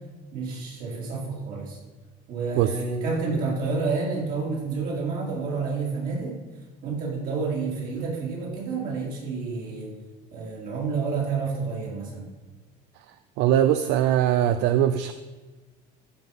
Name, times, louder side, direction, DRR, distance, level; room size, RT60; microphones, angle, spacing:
voice 1, 0.3-1.8 2.3-6.3 6.8-9.9 10.3-12.3, right 4 dB, 50° right, -3 dB, 4.0 m, -29 dB
voice 2, 13.4-15.1, right 11 dB, 75° right, 11 dB, 0.6 m, -21 dB
14.5 x 5.9 x 5.5 m, 1.3 s
cardioid pair, 130°, 19 cm